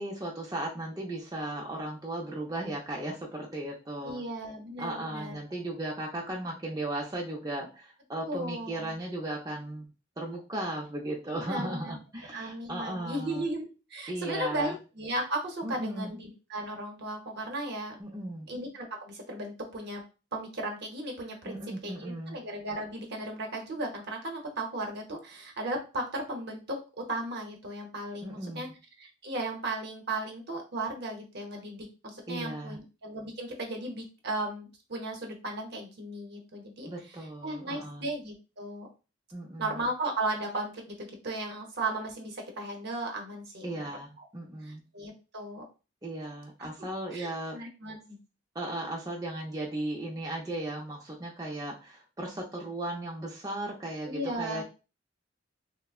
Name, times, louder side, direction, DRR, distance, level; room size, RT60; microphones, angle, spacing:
voice 1, 0.0-4.2 4.8-13.5 14.1-14.8 15.6-16.1 18.0-18.5 21.5-22.4 28.2-28.7 32.3-32.8 36.9-38.1 39.3-39.9 43.6-44.8 46.0-47.6 48.5-54.6, right 1 dB, 20° right, -2 dB, 0.5 m, -36 dB
voice 2, 4.0-5.4 8.3-8.9 11.5-12.0 12.3-18.0 18.5-20.0 20.3-26.8 27.1-28.7 29.0-36.9 37.4-38.9 39.6-43.8 44.6-45.6 46.6-46.7 47.1-48.2 54.0-54.6, right 1 dB, 60° right, 2 dB, 0.7 m, -36 dB
3.4 x 2.0 x 2.3 m, 0.32 s
head